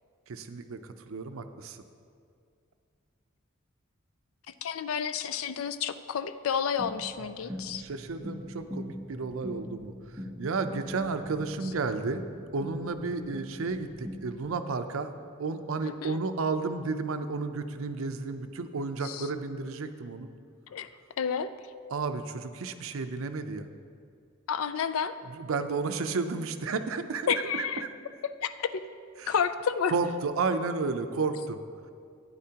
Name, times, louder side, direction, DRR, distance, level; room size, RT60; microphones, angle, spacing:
voice 1, 0.3-1.8 7.8-12.2 12.5-20.3 21.9-23.7 25.3-27.7 29.2-29.3 29.9-31.6, right 4 dB, 75° right, 9 dB, 0.5 m, -32 dB
voice 2, 4.6-7.8 16.0-16.2 19.0-19.3 20.7-20.9 21.2-21.5 24.5-25.1 27.3-27.8 28.4-28.8 29.3-29.9, left 7 dB, 75° left, 12 dB, 0.4 m, -30 dB
sound 1, 6.8-14.5, equal, ahead, 1.3 m, -42 dB
12.0 x 9.4 x 2.9 m, 2.3 s
head